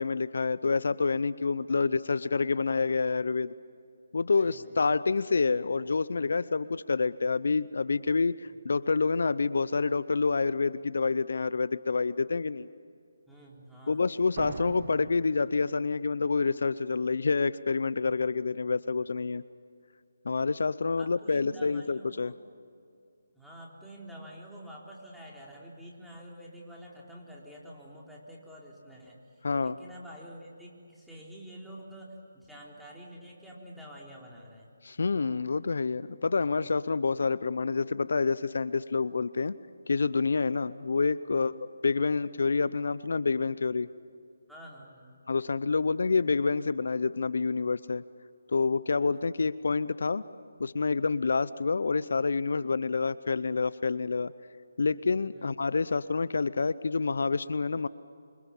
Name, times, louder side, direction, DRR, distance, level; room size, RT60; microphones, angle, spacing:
voice 1, 0.0-3.5 4.1-12.7 13.9-19.4 20.2-22.3 29.4-29.8 34.8-39.5 39.9-41.5 41.8-43.9 45.3-48.0 48.5-50.2 50.6-54.3 54.8-57.9, left 4 dB, 65° left, 17 dB, 0.7 m, -28 dB
voice 2, 4.4-4.8 13.3-14.2 21.0-22.3 23.3-29.2 29.6-34.7 41.3-41.5 44.5-45.2 49.0-49.2 54.8-55.0 55.3-55.5, equal, ahead, -5 dB, 3.9 m, -48 dB
sound 1, 14.4-16.2, right 7 dB, 45° right, 0.9 m, -43 dB
28.0 x 26.0 x 7.3 m, 2.4 s
figure-of-eight pair, 155°, 0 cm